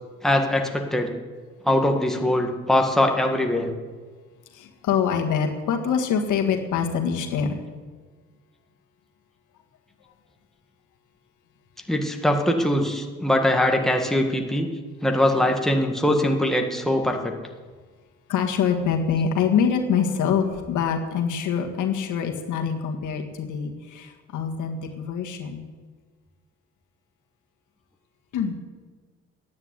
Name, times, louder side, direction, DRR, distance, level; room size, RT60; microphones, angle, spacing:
voice 1, 0.2-1.1 1.6-3.7 11.9-14.7 15.0-17.3, left 1 dB, ahead, 2 dB, 1.8 m, -22 dB
voice 2, 4.5-7.6 18.3-25.6 28.3-28.5, left 7 dB, 80° left, 3 dB, 1.7 m, -25 dB
10.5 x 9.4 x 9.6 m, 1.4 s
cardioid pair, 90°, 30 cm